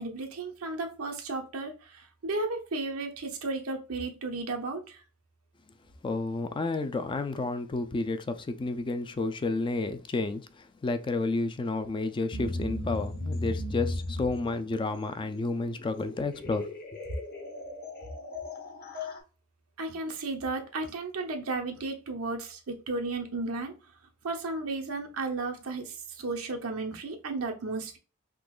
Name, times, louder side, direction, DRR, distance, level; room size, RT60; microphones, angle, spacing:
voice 1, 0.0-5.0 19.8-23.7 24.2-28.0, right 3 dB, 85° right, 0.8 m, -34 dB
voice 2, 6.0-10.4 10.8-16.6, left 3 dB, 25° left, 0.3 m, -31 dB
sound 1, 12.3-19.2, left 1 dB, 45° left, 0.9 m, -37 dB
3.7 x 2.9 x 2.3 m
head